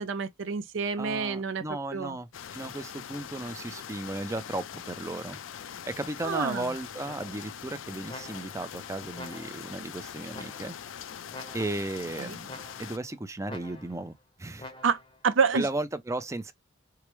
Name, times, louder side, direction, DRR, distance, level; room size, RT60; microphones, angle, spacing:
voice 1, 0.0-1.6 1.9-2.2 6.2-6.7 12.2-12.4 14.8-15.7, right 5 dB, 70° right, 0.5 m, -28 dB
voice 2, 1.0-5.4 5.8-10.7 11.5-14.7 15.5-16.5, right 2 dB, 15° right, 0.4 m, -35 dB
sound 1, 2.3-13.0, left 8 dB, 75° left, 0.4 m, -42 dB
sound 2, 7.1-7.6 8.1-8.7 9.1-9.8 10.3-10.9 11.3-12.0 12.5-13.1 13.5-14.1 14.6-15.2, left 2 dB, 25° left, 0.7 m, -47 dB
4.7 x 2.0 x 3.0 m
head